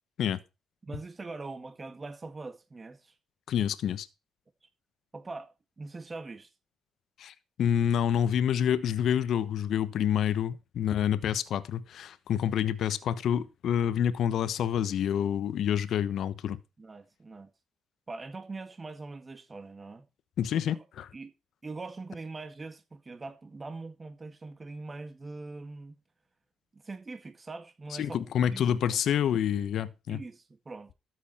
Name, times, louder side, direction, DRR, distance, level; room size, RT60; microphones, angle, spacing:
voice 1, 0.8-3.1 5.1-6.5 16.8-17.5 18.1-20.1 20.7-20.8 21.1-21.3 21.6-26.0 26.7-28.2 28.5-29.0 30.1-30.9, right 3 dB, 25° right, 1.8 m, -42 dB
voice 2, 3.5-4.1 7.2-16.6 20.4-21.1 28.0-30.2, left 9 dB, 70° left, 1.1 m, -28 dB
13.5 x 8.1 x 4.4 m
cardioid pair, 90°, 0 cm